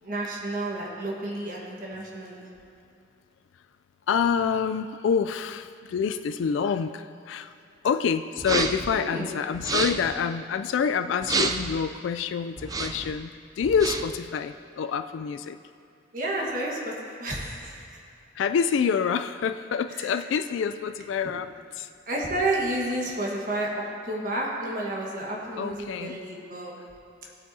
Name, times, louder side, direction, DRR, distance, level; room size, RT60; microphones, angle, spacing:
voice 1, 0.0-2.5 8.9-9.4 16.1-18.0 19.9-20.1 22.1-26.8, right 1 dB, 45° right, -3 dB, 1.4 m, -31 dB
voice 2, 4.1-7.5 7.8-15.6 18.3-21.5 21.8-21.9 25.6-26.2, left 6 dB, 75° left, 9 dB, 0.3 m, -27 dB
sound 1, 8.4-8.9 9.5-10.1 11.2-11.8 12.6-13.1 13.6-14.2, right 3 dB, 20° right, 0.4 m, -28 dB
17.0 x 8.3 x 2.7 m, 2.5 s
head